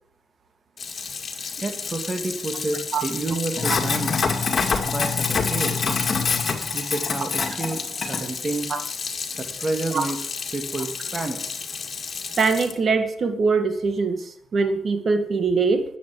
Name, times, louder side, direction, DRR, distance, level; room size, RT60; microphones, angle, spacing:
Sink (filling or washing), 0.8-12.7, left 5 dB, 45° left, 2.0 m, -27 dB
voice 1, 1.6-4.3 4.9-5.9 6.7-8.7 9.4-10.2 10.5-11.4, right 2 dB, 25° right, 6 dB, 2.1 m, -29 dB
voice 2, 12.4-15.8, right 4 dB, 50° right, 8 dB, 2.0 m, -22 dB
10.5 x 8.6 x 8.3 m, 0.68 s
cardioid pair, 75°, 0 cm